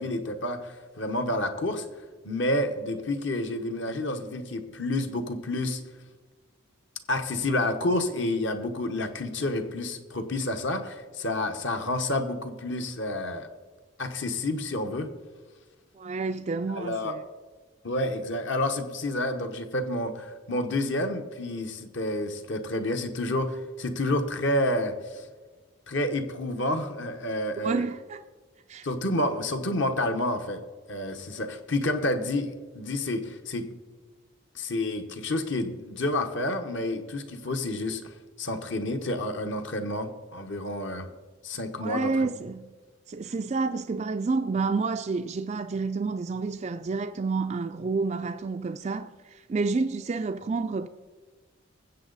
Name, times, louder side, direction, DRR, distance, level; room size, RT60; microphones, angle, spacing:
voice 1, 0.0-1.9 2.2-5.8 7.1-13.5 14.0-15.1 16.7-17.1 17.8-25.3 25.9-27.8 28.8-30.6 30.9-33.7 34.5-38.0 38.4-41.1 41.4-42.3, left 1 dB, 60° left, 1.1 m, -29 dB
voice 2, 16.0-17.2 27.6-28.2 28.7-28.9 41.8-42.7 43.1-50.9, right 4 dB, 35° right, 0.3 m, -29 dB
20.0 x 7.9 x 4.0 m
head